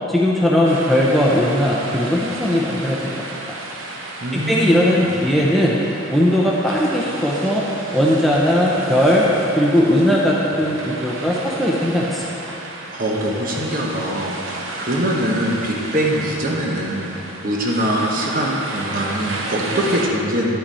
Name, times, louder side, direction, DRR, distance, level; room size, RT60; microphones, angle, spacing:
voice 1, 0.1-3.1 3.5-3.6 4.3-5.8 6.1-7.6 7.9-9.3 9.6-12.3, left 1 dB, ahead, -5 dB, 0.6 m, -18 dB
sound 1, 0.6-20.1, right 2 dB, 70° right, 0.8 m, -32 dB
voice 2, 4.2-5.1 12.9-17.1 17.4-20.6, equal, 45° right, -2 dB, 1.0 m, -23 dB
10.5 x 5.8 x 4.2 m, 3.0 s
head